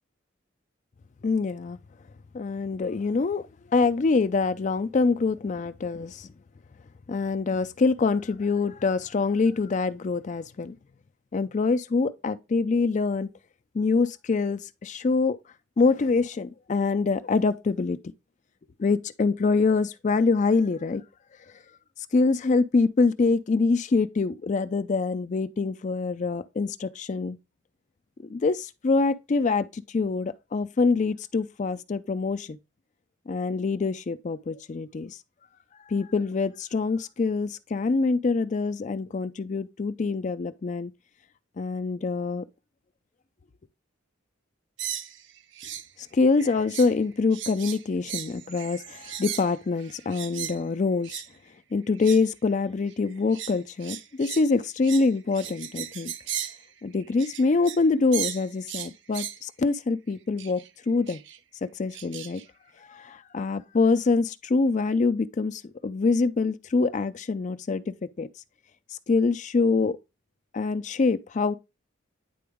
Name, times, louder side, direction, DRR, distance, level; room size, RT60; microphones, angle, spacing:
voice 1, 1.2-1.8 2.3-3.5 3.7-6.3 7.1-10.8 11.3-13.3 13.7-15.4 15.8-18.0 18.8-21.0 22.1-27.4 28.3-32.6 33.3-35.2 35.9-40.9 41.6-42.4 46.1-51.2 51.7-56.1 56.8-61.2 61.6-62.4 62.9-68.3 68.9-70.0 70.5-71.5, left 4 dB, 40° left, 0.4 m, -25 dB
sound 1, 44.8-45.9 46.2-47.0 47.3-50.6 51.0-51.3 51.9-52.3 52.9-57.9 58.1-59.4 60.4-60.7 61.1-61.4 61.9-62.5, right 10 dB, 60° right, 0.5 m, -37 dB
9.3 x 3.9 x 3.5 m
head